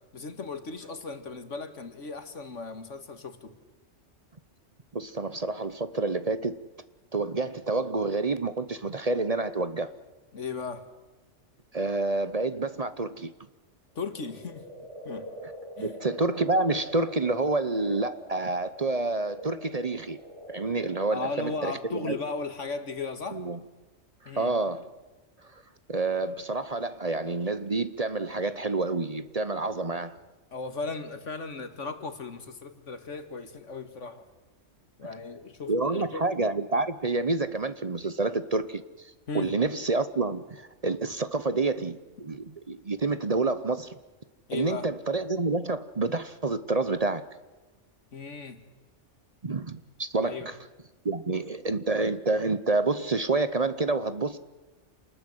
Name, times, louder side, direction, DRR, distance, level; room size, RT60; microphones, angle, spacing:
voice 1, 0.1-3.5 10.3-10.8 14.0-14.7 15.0-15.3 15.8-16.0 21.1-23.4 24.3-24.5 30.5-34.3 35.0-36.3 39.3-39.5 44.5-44.9 48.1-48.6 50.2-50.5, left 4 dB, 80° left, 2.2 m, -36 dB
voice 2, 4.9-6.6 7.1-9.9 11.7-13.3 15.8-20.2 20.5-21.7 22.0-22.2 23.3-23.6 24.3-24.9 25.9-30.2 35.7-43.9 44.5-47.2 49.4-50.6 51.0-54.4, right 3 dB, 35° right, 0.9 m, -28 dB
sound 1, 14.0-22.7, equal, 75° right, 7.1 m, -45 dB
28.0 x 20.0 x 8.0 m
omnidirectional pair, 1.2 m